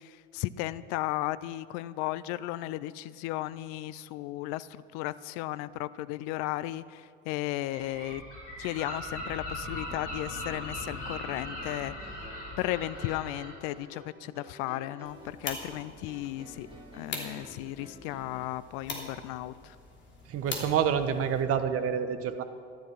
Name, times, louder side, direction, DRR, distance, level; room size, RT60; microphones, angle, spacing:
voice 1, 0.0-8.2 8.6-11.9 12.6-16.7 16.9-19.8, left 16 dB, 45° left, 17 dB, 0.5 m, -35 dB
Gull seagull, 7.7-13.5, left 1 dB, 75° left, 4.4 m, -39 dB
sound 1, 9.8-18.5, equal, 15° right, 3.3 m, -50 dB
sound 2, 15.0-21.4, left 3 dB, 30° left, 3.1 m, -43 dB
voice 2, 20.3-22.4, right 8 dB, 40° right, 10 dB, 1.2 m, -28 dB
14.5 x 12.0 x 5.9 m, 2.2 s
figure-of-eight pair, 65°, 36 cm